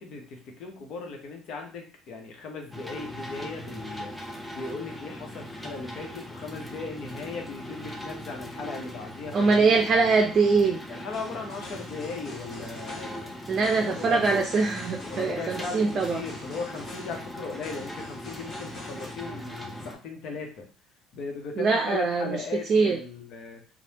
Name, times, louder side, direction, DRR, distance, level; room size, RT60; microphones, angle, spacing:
voice 1, 0.0-4.1 4.5-9.9 10.9-13.3 13.7-14.4 15.0-20.7 21.1-23.6, left 4 dB, 65° left, 2 dB, 0.8 m, -37 dB
sound 1, 2.7-19.9, equal, 10° left, 0.7 m, -40 dB
voice 2, 9.3-10.8 13.5-16.2 21.6-23.0, right 4 dB, 50° right, 3 dB, 0.4 m, -23 dB
sound 2, 11.1-19.1, left 2 dB, 45° left, 1.1 m, -46 dB
3.2 x 2.1 x 2.8 m, 0.36 s
hypercardioid pair, 70°, 0 cm